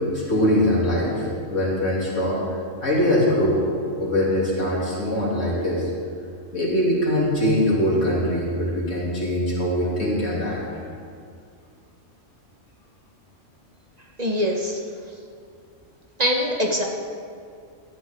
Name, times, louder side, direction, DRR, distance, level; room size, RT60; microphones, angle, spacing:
voice 1, 0.1-1.2 1.5-2.4 2.8-3.6 4.0-5.9 6.5-10.6, left 1 dB, 65° left, -6 dB, 3.3 m, -22 dB
voice 2, 14.2-14.8 16.2-16.8, equal, 30° right, 0 dB, 1.3 m, -23 dB
18.0 x 12.0 x 3.7 m, 2.3 s
omnidirectional pair, 1.4 m